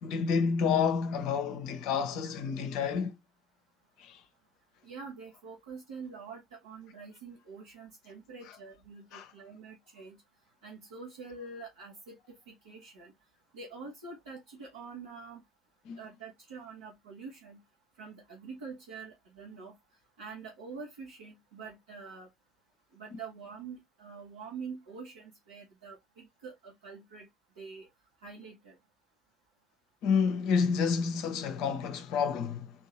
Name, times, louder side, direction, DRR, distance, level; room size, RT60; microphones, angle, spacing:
voice 1, 0.0-3.1 4.0-4.2 9.1-9.3 15.9-16.0 30.0-32.7, left 6 dB, 60° left, 0.7 m, -29 dB
voice 2, 4.8-10.2 10.6-13.1 13.5-15.4 16.0-17.6 18.0-19.7 20.2-22.3 22.9-27.3 27.6-27.9 28.2-28.8, right 4 dB, 75° right, 1.0 m, -46 dB
3.6 x 2.7 x 2.9 m
figure-of-eight pair, 50°, 0 cm